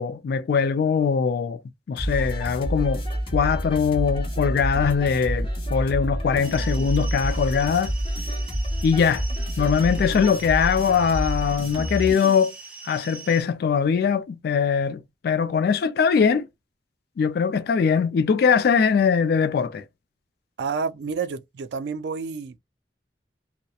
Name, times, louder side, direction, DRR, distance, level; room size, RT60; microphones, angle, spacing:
voice 1, 0.0-1.6 1.9-3.0 3.3-7.9 8.8-9.2 9.6-12.5 12.8-16.5 17.2-19.8, left 6 dB, 60° left, 0.3 m, -21 dB
sound 1, 2.0-12.5, equal, 30° left, 0.8 m, -28 dB
sound 2, 6.4-13.4, right 4 dB, 5° right, 0.4 m, -42 dB
voice 2, 20.6-22.6, right 5 dB, 70° right, 0.3 m, -29 dB
2.7 x 2.0 x 2.3 m
head